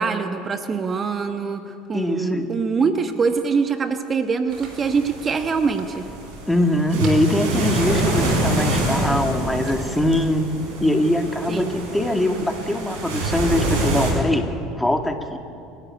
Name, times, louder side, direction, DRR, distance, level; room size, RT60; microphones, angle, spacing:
voice 1, 0.0-6.1 11.5-11.7, right 5 dB, 35° right, 8 dB, 1.2 m, -24 dB
voice 2, 1.9-2.5 6.5-10.5 10.8-14.5 14.7-15.4, left 1 dB, 5° left, 5 dB, 2.2 m, -22 dB
sound 1, 1.9-2.0 2.8-3.6 4.4-4.9 5.6-6.5 6.9-7.5 8.0-8.8 9.3-10.1, right 5 dB, 50° right, 3.8 m, -41 dB
sound 2, 4.5-14.1, right 1 dB, 70° right, 6.7 m, -26 dB
29.0 x 12.0 x 8.7 m, 2.6 s
hypercardioid pair, 70°, 0 cm